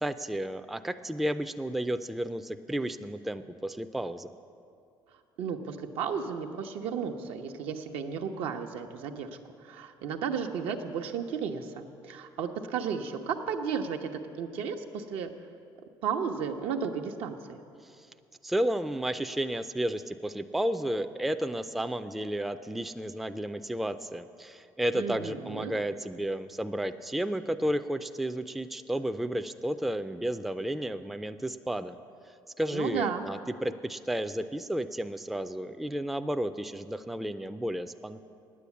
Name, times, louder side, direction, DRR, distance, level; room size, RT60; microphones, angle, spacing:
voice 1, 0.0-4.3 18.4-32.0 32.6-38.2, right 1 dB, ahead, 9 dB, 0.3 m, -32 dB
voice 2, 5.4-9.3 9.6-14.1 14.4-15.3 16.0-17.6 24.9-25.7 32.7-33.3, right 6 dB, 80° right, 4 dB, 0.9 m, -33 dB
9.8 x 8.5 x 8.3 m, 2.4 s
cardioid pair, 110°, 10 cm